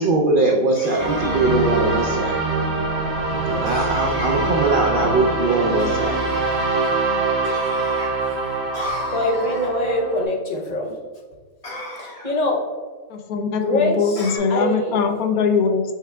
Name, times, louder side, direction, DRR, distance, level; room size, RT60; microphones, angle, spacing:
voice 1, 0.0-2.3 3.6-6.1, right 2 dB, 85° right, 0 dB, 0.4 m, -21 dB
sound 1, 0.7-1.8 3.7-4.6 5.8-6.5 7.4-8.1 8.7-9.7 11.6-12.4 14.2-14.4, left 1 dB, 25° left, 1.5 m, -35 dB
sound 2, 1.0-10.2, right 3 dB, 30° right, 0.7 m, -23 dB
voice 2, 3.5-3.9 6.5-6.6 7.9-8.1 8.9-11.0 12.0-12.7 13.5-15.0, left 1 dB, 40° left, 0 dB, 0.6 m, -24 dB
voice 3, 13.1-15.8, left 5 dB, 85° left, 5 dB, 1.0 m, -21 dB
4.8 x 4.5 x 2.2 m, 1.4 s
omnidirectional pair, 1.5 m